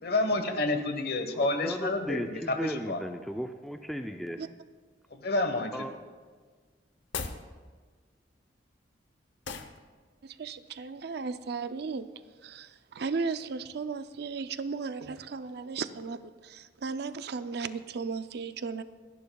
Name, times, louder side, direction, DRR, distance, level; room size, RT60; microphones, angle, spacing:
voice 1, 0.0-3.0 5.1-5.9, left 2 dB, 60° left, 7 dB, 1.2 m, -29 dB
voice 2, 1.4-4.5 5.7-5.9, equal, ahead, 5 dB, 0.4 m, -36 dB
sound 1, 7.0-7.5 9.4-9.8, left 5 dB, 85° left, 0.8 m, -36 dB
voice 3, 10.2-12.1 12.4-18.8, right 5 dB, 60° right, 12 dB, 0.5 m, -35 dB
29.0 x 10.5 x 2.3 m, 1.5 s
head